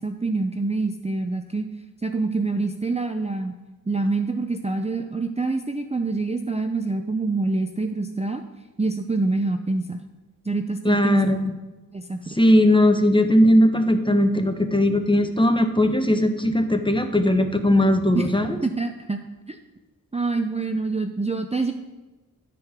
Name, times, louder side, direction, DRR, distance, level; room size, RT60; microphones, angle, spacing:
voice 1, 0.0-1.7 2.0-3.5 3.9-8.4 8.8-10.0 10.4-11.2 11.9-12.4 18.1-18.3 18.6-19.2 19.5-19.6 20.1-21.7, right 3 dB, 20° right, 5 dB, 0.5 m, -26 dB
voice 2, 10.8-11.5 12.4-18.6, left 1 dB, 15° left, 7 dB, 0.8 m, -19 dB
11.0 x 4.6 x 4.9 m, 1.1 s
wide cardioid pair, 45°, 36 cm